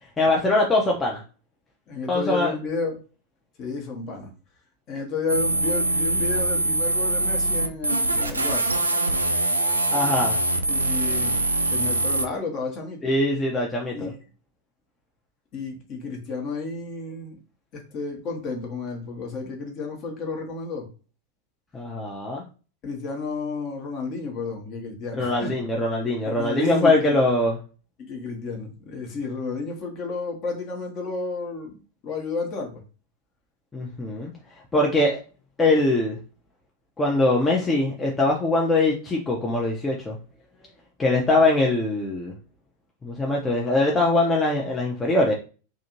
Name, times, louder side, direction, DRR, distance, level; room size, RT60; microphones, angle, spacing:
voice 1, 0.2-1.2 2.1-2.5 9.9-10.4 13.0-14.1 21.7-22.4 25.1-27.6 33.7-34.3 34.7-35.2 35.6-36.2 37.0-40.2 41.0-42.3 43.0-45.3, left 2 dB, 15° left, -2 dB, 0.5 m, -22 dB
voice 2, 1.9-3.0 3.6-4.3 4.9-8.7 10.7-11.4 11.7-13.0 13.9-14.2 15.5-17.4 17.7-20.9 22.8-25.5 26.2-27.2 28.0-32.8, left 4 dB, 35° left, 2 dB, 0.8 m, -31 dB
sound 1, 5.3-12.3, right 2 dB, 80° right, 0.4 m, -23 dB
2.5 x 2.5 x 2.9 m, 0.35 s
figure-of-eight pair, 90°, 0 cm